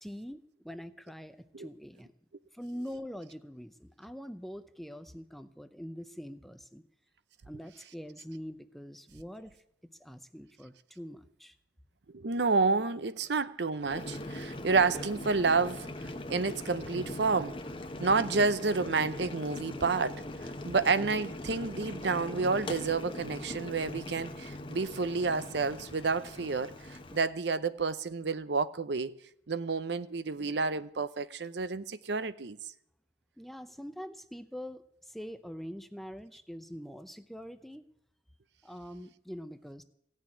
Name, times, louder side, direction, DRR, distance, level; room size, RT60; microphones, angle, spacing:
voice 1, 0.0-2.1 2.5-6.8 7.4-9.6 10.0-11.6 33.4-37.9 38.6-39.8, equal, ahead, 0.6 m, -44 dB
voice 2, 12.1-17.6 18.0-20.2 20.6-29.1 29.5-32.6, right 4 dB, 65° right, 0.7 m, -30 dB
Boiling, 13.8-27.3, left 1 dB, 30° left, 0.9 m, -41 dB
16.5 x 6.5 x 9.7 m
head